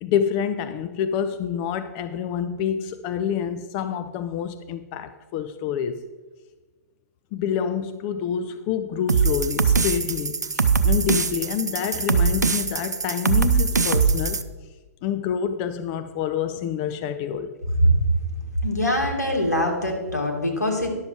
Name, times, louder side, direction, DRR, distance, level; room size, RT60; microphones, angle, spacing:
voice 1, 0.0-6.0 7.3-14.4 15.0-17.6, left 8 dB, 35° left, 0.5 m, -27 dB
sound 1, 9.1-14.4, right 5 dB, 85° right, 0.6 m, -22 dB
voice 2, 18.6-20.9, equal, 90° left, 2.2 m, -22 dB
11.0 x 6.9 x 4.6 m
figure-of-eight pair, 115°, 9 cm